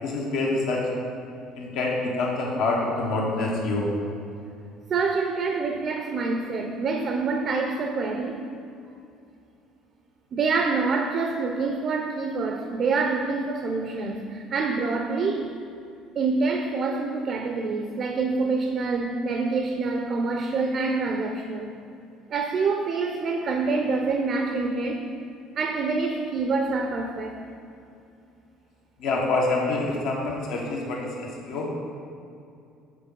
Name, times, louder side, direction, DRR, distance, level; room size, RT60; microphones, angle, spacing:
voice 1, 0.0-0.9 1.5-3.9 29.0-31.7, left 2 dB, 70° left, -2 dB, 1.2 m, -26 dB
voice 2, 4.9-8.5 10.3-15.5 16.2-21.7 22.3-25.1 25.6-27.4, right 4 dB, 45° right, 4 dB, 0.5 m, -26 dB
6.6 x 4.1 x 3.7 m, 2.6 s
cardioid pair, 110°, 0 cm